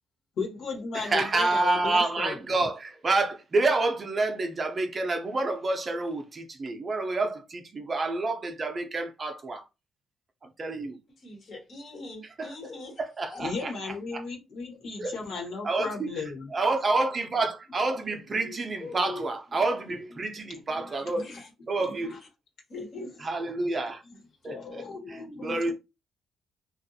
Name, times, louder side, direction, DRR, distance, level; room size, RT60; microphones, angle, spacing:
voice 1, 0.4-2.4 13.4-16.5 19.0-19.2 20.7-20.9 21.3-21.4 22.1-22.2 23.0-23.1 24.4-25.7, left 4 dB, 75° left, 1.3 m, -35 dB
voice 2, 0.9-9.7 10.6-11.0 12.4-12.5 13.0-14.2 15.0-16.2 16.5-21.3 21.7-22.2 23.2-24.0 24.4-24.8 25.1-25.7, right 2 dB, 35° right, 0.6 m, -28 dB
voice 3, 11.2-13.0 13.3-13.4 18.3-19.0 21.1-21.5 21.8-22.0 22.7-23.1, left 2 dB, 55° left, 1.2 m, -42 dB
2.6 x 2.3 x 2.7 m
cardioid pair, 90°, 0 cm